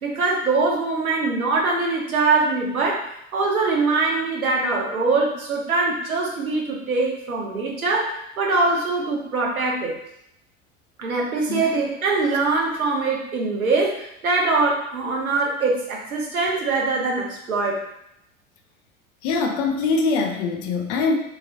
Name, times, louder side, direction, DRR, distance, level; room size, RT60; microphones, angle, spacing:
voice 1, 0.0-3.0 3.3-9.9 11.0-17.8, right 3 dB, 85° right, -1 dB, 0.8 m, -23 dB
voice 2, 19.2-21.2, left 4 dB, 35° left, 4 dB, 0.4 m, -23 dB
3.0 x 2.9 x 2.6 m, 0.78 s
figure-of-eight pair, 80°, 41 cm